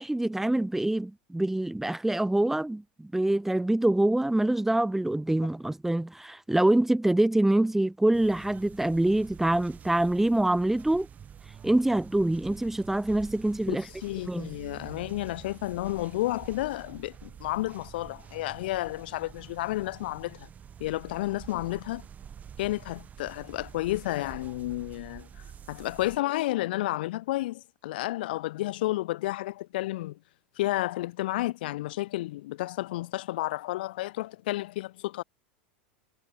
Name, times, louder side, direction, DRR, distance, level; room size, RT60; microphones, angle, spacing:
voice 1, 0.0-11.1 11.6-13.8 14.3-14.5, right 1 dB, 5° right, 3.4 m, -25 dB
sound 1, 8.1-26.2, right 8 dB, 25° right, 7.2 m, -48 dB
voice 2, 13.7-20.5 20.8-22.0 22.6-25.3 25.7-30.2 30.6-35.2, left 17 dB, 60° left, 5.1 m, -31 dB
figure-of-eight pair, 85°, 6 cm